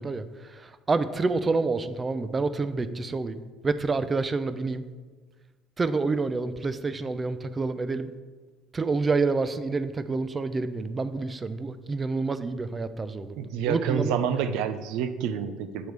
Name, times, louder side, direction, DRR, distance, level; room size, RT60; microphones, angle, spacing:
voice 1, 0.0-4.8 5.8-8.1 8.7-13.4 13.7-14.2, right 3 dB, 20° right, 12 dB, 0.3 m, -28 dB
voice 2, 13.4-15.9, right 8 dB, 80° right, 11 dB, 0.5 m, -28 dB
7.8 x 3.2 x 5.1 m, 1.4 s
cardioid pair, 135°, 0 cm